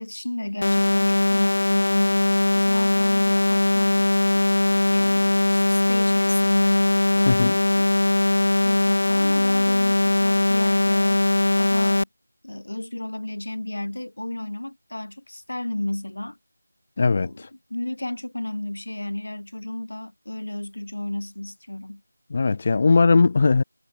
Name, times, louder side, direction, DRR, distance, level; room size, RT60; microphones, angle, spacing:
voice 1, 0.0-2.3 2.6-4.1 4.7-7.9 8.6-11.3 11.6-12.1 12.4-16.4 17.2-22.0, left 1 dB, 85° left, 7.3 m, -33 dB
sound 1, 0.6-12.0, left 2 dB, 50° left, 0.6 m, -20 dB
voice 2, 7.3-7.6 17.0-17.3 22.3-23.6, left 4 dB, 20° left, 0.9 m, -19 dB
figure-of-eight pair, 180°, 0 cm